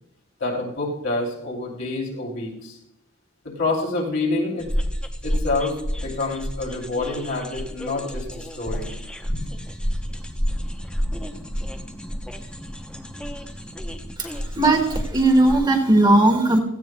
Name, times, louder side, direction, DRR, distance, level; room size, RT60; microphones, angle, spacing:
voice 1, 0.4-2.8 3.4-4.7 5.2-9.0 9.3-9.4, left 2 dB, 55° left, -2 dB, 2.9 m, -27 dB
sound 1, 4.6-15.5, equal, 5° left, 0.7 m, -30 dB
voice 2, 14.2-16.6, right 2 dB, 20° right, 4 dB, 1.3 m, -18 dB
16.5 x 14.5 x 2.2 m, 0.79 s
head